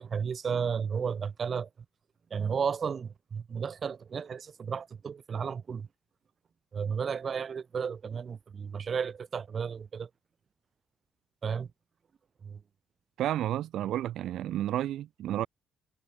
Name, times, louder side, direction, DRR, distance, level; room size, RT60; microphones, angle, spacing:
voice 1, 0.0-1.7 2.3-5.9 6.7-10.1 11.4-11.7 12.4-12.6, right 6 dB, 40° right, 4.0 m, -33 dB
voice 2, 13.2-15.5, right 12 dB, 80° right, 2.6 m, -31 dB
cardioid pair, 125°, 0 cm